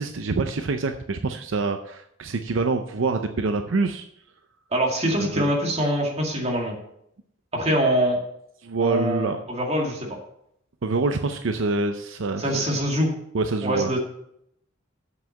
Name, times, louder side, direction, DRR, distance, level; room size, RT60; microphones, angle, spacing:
voice 1, 0.0-4.1 5.1-5.5 8.6-9.4 10.8-12.6 13.3-14.0, right 3 dB, 75° right, 7 dB, 0.6 m, -26 dB
voice 2, 4.7-6.7 7.5-8.2 8.8-10.2 12.4-13.1 13.6-14.0, equal, 30° right, 0 dB, 2.2 m, -24 dB
7.9 x 5.8 x 7.1 m, 0.74 s
head